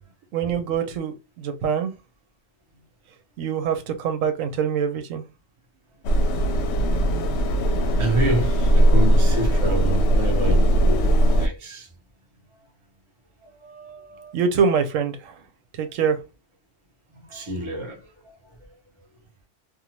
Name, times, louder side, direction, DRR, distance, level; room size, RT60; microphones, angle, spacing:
voice 1, 0.3-1.9 3.4-5.2 13.6-15.4 15.7-16.2, right 6 dB, 90° right, 1.0 m, -25 dB
sound 1, 6.0-11.5, right 1 dB, 65° left, 0.8 m, -19 dB
voice 2, 8.0-11.9 17.1-18.4, right 1 dB, 25° right, 0.8 m, -28 dB
2.7 x 2.3 x 2.9 m
omnidirectional pair, 1.3 m